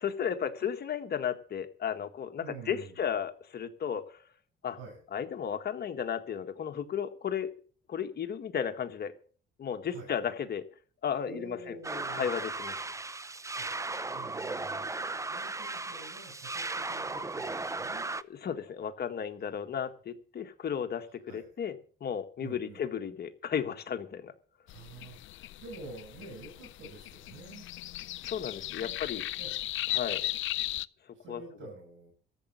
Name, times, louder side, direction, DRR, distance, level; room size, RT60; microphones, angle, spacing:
voice 1, 0.0-4.2 4.6-4.8 5.1-7.5 7.9-9.1 9.6-10.6 11.0-11.8 12.1-12.8 18.4-21.7 22.0-24.3 28.2-29.2 29.9-30.3 31.3-31.4, left 8 dB, 55° left, 7 dB, 1.8 m, -34 dB
voice 2, 2.4-3.1 4.7-5.0 9.8-10.1 11.3-12.3 13.6-13.7 14.1-14.8 15.3-18.2 19.4-19.7 21.3-21.6 22.4-22.9 24.6-27.7 28.8-29.6 31.1-32.1, right 3 dB, 90° right, 0 dB, 6.6 m, -48 dB
sound 1, 11.8-18.2, right 3 dB, 15° right, 0.7 m, -36 dB
sound 2, 24.7-30.9, left 15 dB, 75° left, 0.5 m, -37 dB
14.0 x 7.4 x 8.2 m, 0.43 s
cardioid pair, 90°, 20 cm